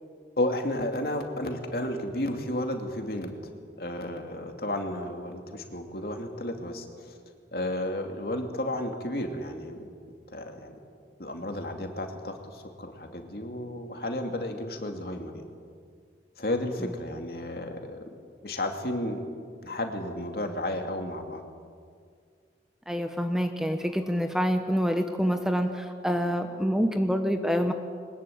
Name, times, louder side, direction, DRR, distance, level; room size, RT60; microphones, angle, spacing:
voice 1, 0.4-3.4 3.8-7.2 7.5-9.9 10.3-10.7 11.2-15.4 16.4-18.2 18.4-19.2 19.6-21.4, left 1 dB, 60° left, 4 dB, 2.6 m, -32 dB
voice 2, 22.9-27.7, equal, 5° right, 6 dB, 1.0 m, -26 dB
22.5 x 20.0 x 8.8 m, 2.1 s
head